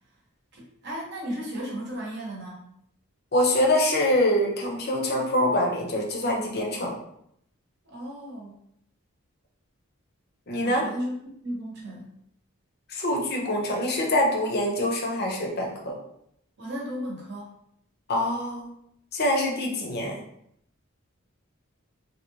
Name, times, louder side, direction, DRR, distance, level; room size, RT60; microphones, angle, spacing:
voice 1, 0.5-2.7 7.8-8.6 10.6-11.2 11.4-12.2 16.6-17.5, equal, 50° right, -3 dB, 0.9 m, -35 dB
voice 2, 3.3-7.0 10.5-10.9 12.9-16.0 18.1-18.7 19.1-20.2, left 1 dB, 45° left, 1 dB, 0.6 m, -25 dB
3.0 x 2.8 x 2.7 m, 0.73 s
head